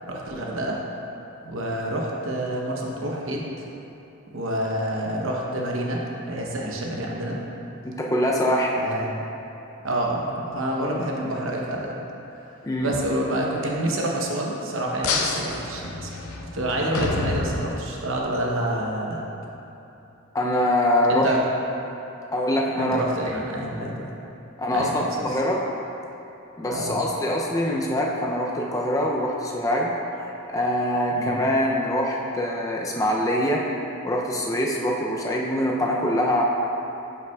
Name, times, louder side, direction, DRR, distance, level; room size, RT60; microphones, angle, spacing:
voice 1, 0.1-0.8 1.4-3.4 4.3-6.0 6.3-7.4 8.8-9.1 9.8-12.0 12.8-16.1 16.5-19.2 21.1-21.4 22.8-24.1 24.7-25.4 26.7-27.0 31.1-31.4, right 1 dB, 65° right, -2 dB, 0.8 m, -28 dB
voice 2, 7.8-8.8 12.6-12.9 20.3-21.3 22.3-23.0 23.3-23.4 24.6-25.6 26.6-29.9 30.2-33.7 34.0-36.4, left 1 dB, 15° left, -2 dB, 0.4 m, -24 dB
sound 1, 15.0-18.2, left 3 dB, 90° left, 0.6 m, -28 dB
8.9 x 5.6 x 2.3 m, 2.9 s
head